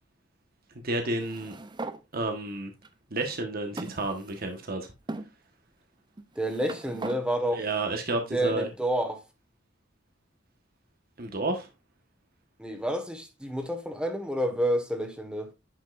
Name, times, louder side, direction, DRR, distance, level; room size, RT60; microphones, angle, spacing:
voice 1, 0.8-1.5 2.1-2.7 3.1-4.9 7.5-8.7 11.2-11.7, right 2 dB, 50° right, 1.3 m, -31 dB
sound 1, 1.2-2.0 2.8-2.9 3.8-4.6 5.1-5.3 6.2-7.2, right 2 dB, 25° right, 0.6 m, -39 dB
voice 2, 6.3-7.6 8.3-9.2 12.6-15.5, right 1 dB, 5° right, 1.4 m, -29 dB
10.0 x 5.4 x 2.5 m
head